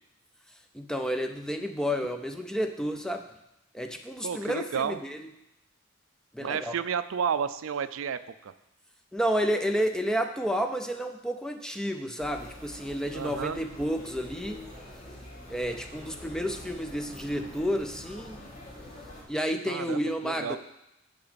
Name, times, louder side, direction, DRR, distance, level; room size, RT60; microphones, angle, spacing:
voice 1, 0.7-3.3 3.7-5.2 6.3-6.7 9.1-14.6 15.5-18.4 19.3-20.6, equal, 5° left, 6 dB, 0.4 m, -30 dB
voice 2, 4.2-5.0 6.4-8.5 13.1-13.6 19.7-20.6, right 7 dB, 85° right, 13 dB, 0.4 m, -31 dB
sound 1, 12.2-19.2, left 1 dB, 40° left, 2.6 m, -45 dB
8.6 x 6.0 x 4.1 m, 0.88 s
head